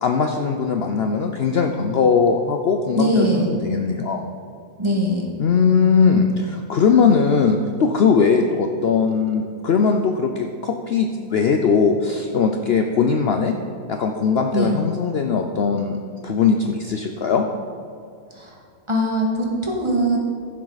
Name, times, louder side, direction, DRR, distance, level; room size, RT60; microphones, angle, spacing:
voice 1, 0.0-4.2 5.4-13.5 13.9-17.4, left 5 dB, 55° left, 4 dB, 0.7 m, -20 dB
voice 2, 3.0-3.6 4.8-5.3 14.5-14.7 18.3-18.6 18.9-20.2, equal, 20° right, -2 dB, 1.7 m, -21 dB
15.0 x 7.5 x 4.0 m, 2.5 s
omnidirectional pair, 1.5 m